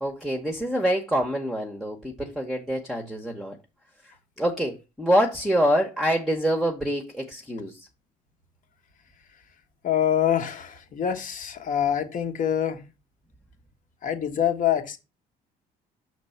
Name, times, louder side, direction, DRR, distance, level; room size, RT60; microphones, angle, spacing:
voice 1, 0.0-3.6 4.4-7.9, equal, ahead, 1.0 m, -26 dB
voice 2, 9.8-12.8 14.0-15.0, left 9 dB, 50° left, 1.2 m, -25 dB
5.9 x 3.3 x 5.6 m
cardioid pair, 110°, 17 cm